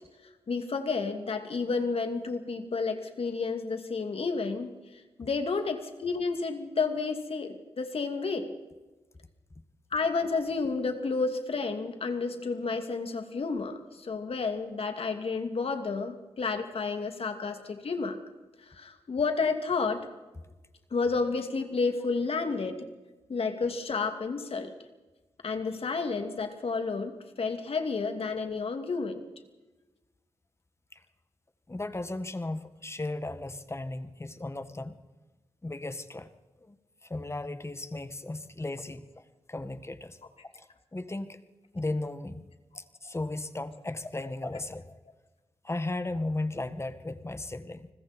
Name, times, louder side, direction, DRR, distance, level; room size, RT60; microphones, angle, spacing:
voice 1, 0.5-4.7 5.2-8.5 9.9-18.2 18.6-20.1 20.9-22.9 23.3-24.7 25.4-29.2, left 4 dB, 60° left, 6 dB, 2.7 m, -31 dB
voice 2, 31.7-35.0 35.6-36.3 36.6-36.8 37.0-39.1 39.5-40.2 40.5-41.4 41.7-42.5 42.7-45.0 45.6-47.9, left 2 dB, 25° left, 10 dB, 1.8 m, -36 dB
29.5 x 20.5 x 4.5 m, 1.2 s
cardioid pair, 55°, 11 cm